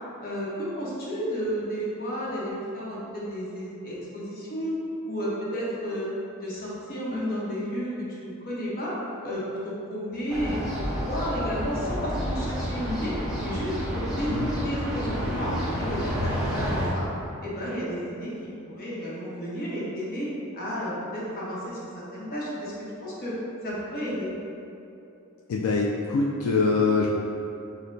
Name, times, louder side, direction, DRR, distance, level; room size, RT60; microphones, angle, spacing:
voice 1, 0.2-4.8 5.0-6.1 6.4-7.9 8.2-8.9 9.2-13.1 13.4-15.5 15.8-17.1 17.4-20.3 20.5-22.7 23.0-23.3 23.6-24.3, equal, 45° left, -6 dB, 0.9 m, -32 dB
sound 1, 10.3-16.9, equal, 5° right, 0.7 m, -30 dB
voice 2, 25.5-27.1, left 4 dB, 80° left, -2 dB, 0.3 m, -24 dB
6.2 x 2.1 x 2.6 m, 2.8 s
head